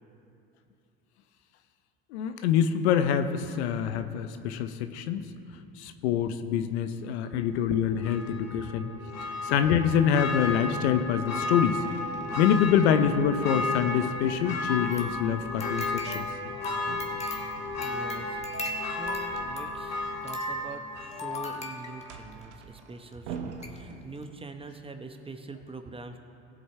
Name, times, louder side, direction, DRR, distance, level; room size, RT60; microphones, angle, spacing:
voice 1, 2.1-5.3 5.8-8.9 9.4-11.8 12.4-16.2, left 8 dB, 80° left, 9 dB, 0.7 m, -25 dB
Church bell, 8.0-21.7 22.0-22.1, left 3 dB, 50° left, 1.7 m, -34 dB
sound 1, 10.4-10.6 11.0-13.5 13.8-15.0 16.8-18.4 20.4-24.6, right 6 dB, 80° right, 1.0 m, -46 dB
sound 2, 14.7-22.4 23.1-23.2 23.6-23.8 24.1-24.2, left 1 dB, 20° left, 1.3 m, -38 dB
voice 2, 17.0-17.4 17.7-26.2, right 3 dB, 15° right, 7 dB, 0.8 m, -44 dB
17.0 x 7.8 x 3.2 m, 2.7 s
hypercardioid pair, 80°, 33 cm